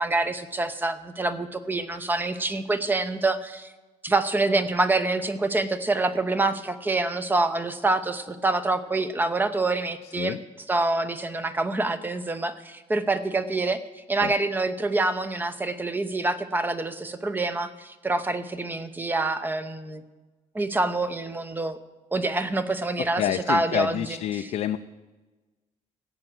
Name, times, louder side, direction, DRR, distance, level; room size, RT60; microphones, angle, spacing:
voice 1, 0.0-3.7 4.0-20.0 20.5-21.8 22.1-24.5, right 2 dB, 15° right, 11 dB, 0.8 m, -26 dB
voice 2, 23.0-24.8, left 11 dB, 65° left, 7 dB, 0.5 m, -28 dB
15.0 x 8.8 x 7.8 m, 1.2 s
cardioid pair, 150°, 13 cm